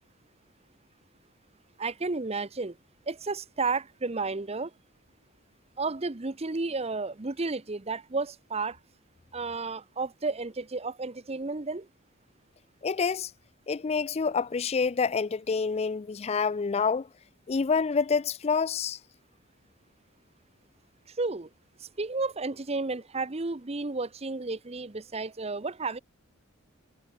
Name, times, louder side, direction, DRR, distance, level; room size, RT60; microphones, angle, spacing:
voice 1, 1.8-2.8 3.1-4.7 5.8-8.8 9.3-11.9 21.1-21.5 21.8-26.0, right 3 dB, 30° right, 0.8 m, -32 dB
voice 2, 12.8-13.3 13.7-17.1 17.5-19.0, left 5 dB, 30° left, 0.4 m, -27 dB
head